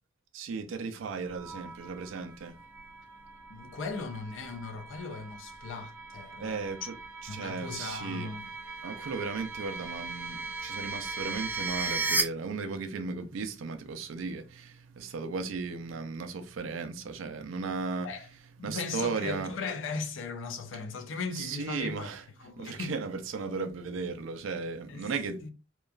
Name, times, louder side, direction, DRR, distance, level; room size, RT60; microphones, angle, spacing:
voice 1, 0.3-2.6 6.4-6.9 7.3-8.3 8.8-18.1 18.6-19.5 21.3-22.2 22.6-25.5, right 4 dB, 85° right, 0.4 m, -36 dB
sound 1, 1.3-12.2, right 3 dB, 10° right, 0.4 m, -38 dB
voice 2, 3.5-6.9 7.3-8.5 18.0-18.3 18.6-22.1 22.4-23.0 24.9-25.1 25.4-25.5, left 4 dB, 80° left, 0.5 m, -38 dB
2.9 x 2.3 x 2.2 m
head